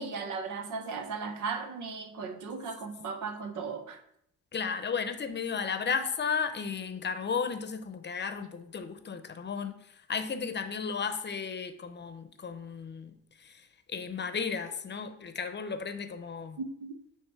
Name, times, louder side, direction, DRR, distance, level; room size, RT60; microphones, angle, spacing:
voice 1, 0.0-4.0 16.6-17.0, right 4 dB, 75° right, 1.0 m, -36 dB
voice 2, 4.5-9.8 10.1-13.1 13.4-13.5 13.9-16.6, left 6 dB, 35° left, 0.8 m, -34 dB
8.8 x 3.2 x 4.7 m
cardioid pair, 90°, 30 cm